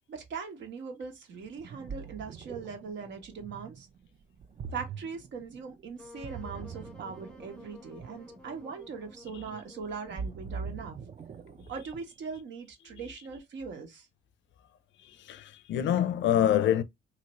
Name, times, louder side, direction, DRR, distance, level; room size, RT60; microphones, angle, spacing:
voice 1, 0.1-3.9 4.7-11.0 11.7-14.1, right 5 dB, 65° right, 1.0 m, -40 dB
Ocean, 1.4-12.2, right 5 dB, 35° right, 0.4 m, -43 dB
Wind instrument woodwind instrument, 6.0-11.1, left 2 dB, 5° left, 0.6 m, -52 dB
voice 2, 15.2-16.8, left 10 dB, 70° left, 0.5 m, -25 dB
2.8 x 2.5 x 3.0 m
cardioid pair, 90°, 20 cm